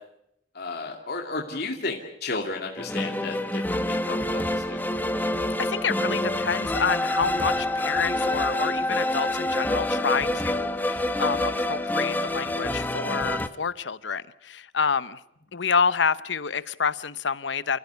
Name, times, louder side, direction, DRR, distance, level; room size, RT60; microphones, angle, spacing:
voice 1, 0.5-4.8, left 3 dB, 60° left, 0 dB, 2.6 m, -33 dB
sound 1, 2.8-13.5, left 1 dB, 10° left, 1.1 m, -27 dB
voice 2, 5.6-15.2 15.5-17.8, left 5 dB, 90° left, 16 dB, 0.8 m, -28 dB
28.5 x 15.5 x 8.3 m, 0.78 s
head